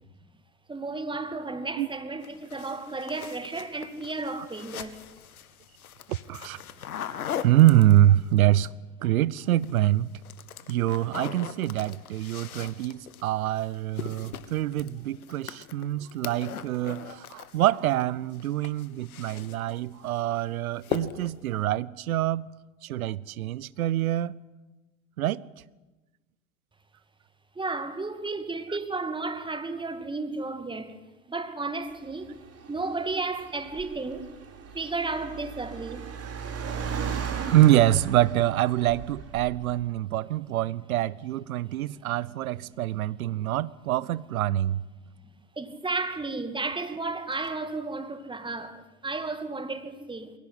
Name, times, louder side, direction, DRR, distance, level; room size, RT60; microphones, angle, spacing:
voice 1, 0.7-5.0 27.6-31.0 31.3-34.4 34.7-36.0 45.6-50.3, right 3 dB, 10° right, 2.2 m, -33 dB
sound 1, 2.2-8.3 9.4-9.9 10.2-18.0 18.3-19.8 20.1-20.4 20.8-21.4, left 9 dB, 80° left, 1.6 m, -40 dB
voice 2, 6.1-6.6 7.4-8.7 9.0-10.2 10.7-22.5 22.8-24.3 25.2-25.4 37.5-44.8, right 13 dB, 75° right, 0.8 m, -25 dB
Car, 31.9-39.9, right 6 dB, 35° right, 4.6 m, -37 dB
22.0 x 17.5 x 9.9 m
hypercardioid pair, 90°, 42 cm